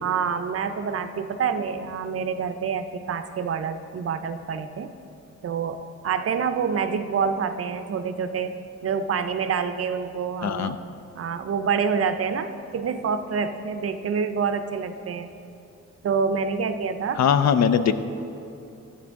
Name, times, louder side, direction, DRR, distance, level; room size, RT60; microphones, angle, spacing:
voice 1, 0.0-4.9 5.4-10.8 11.2-15.3 16.0-17.2, right 6 dB, 55° right, 9 dB, 0.5 m, -27 dB
voice 2, 10.4-10.8 17.1-17.9, left 7 dB, 65° left, 11 dB, 0.5 m, -20 dB
12.5 x 7.6 x 3.6 m, 2.7 s
wide cardioid pair, 145°, 29 cm